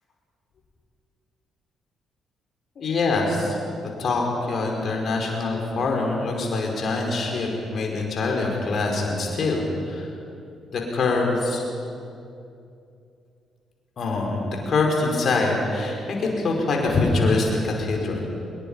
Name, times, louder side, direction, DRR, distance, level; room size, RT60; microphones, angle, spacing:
voice 1, 2.8-3.6 4.0-10.1 10.7-11.6 14.0-18.3, left 3 dB, 50° left, 0 dB, 5.3 m, -24 dB
25.0 x 21.5 x 5.7 m, 2.5 s
figure-of-eight pair, 40°, 0 cm